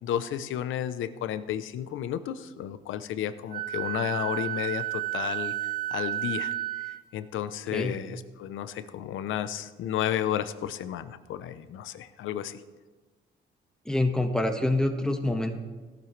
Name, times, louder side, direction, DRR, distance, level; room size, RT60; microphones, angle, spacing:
voice 1, 0.0-5.5 5.9-6.5 6.8-12.6, left 10 dB, 80° left, 12 dB, 0.7 m, -32 dB
Wind instrument woodwind instrument, 3.5-7.0, right 15 dB, 45° right, 1.0 m, -32 dB
voice 2, 13.8-15.6, left 1 dB, 5° left, 4 dB, 1.5 m, -26 dB
17.0 x 12.0 x 3.3 m, 1.3 s
cardioid pair, 90°, 20 cm